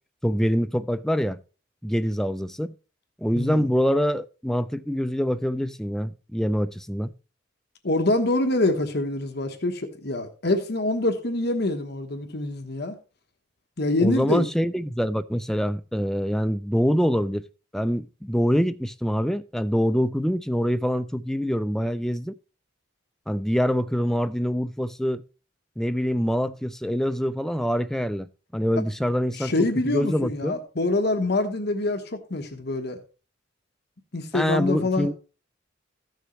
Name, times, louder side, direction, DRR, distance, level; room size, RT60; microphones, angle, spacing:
voice 1, 0.2-1.4 1.8-2.7 3.2-7.1 14.0-17.4 17.7-22.3 23.3-25.2 25.8-28.3 28.5-30.6 34.3-35.1, equal, ahead, 0.3 m, -25 dB
voice 2, 3.3-3.7 7.8-13.0 13.8-14.5 29.3-33.0 34.1-35.1, left 2 dB, 55° left, 1.2 m, -25 dB
15.0 x 6.3 x 3.1 m
head